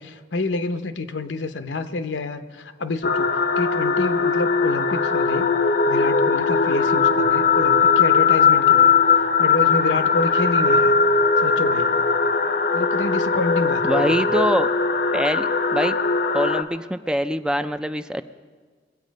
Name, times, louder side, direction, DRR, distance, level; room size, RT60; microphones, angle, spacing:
voice 1, 0.0-5.5 5.9-8.9 9.4-10.9 11.4-11.9 12.7-14.3, left 3 dB, 85° left, 10 dB, 0.8 m, -28 dB
sound 1, 3.0-16.6, left 5 dB, 55° left, 0.6 m, -19 dB
voice 2, 13.8-14.7 15.1-16.0 16.3-18.2, equal, 5° right, 10 dB, 0.3 m, -24 dB
22.0 x 8.1 x 5.2 m, 1.5 s
head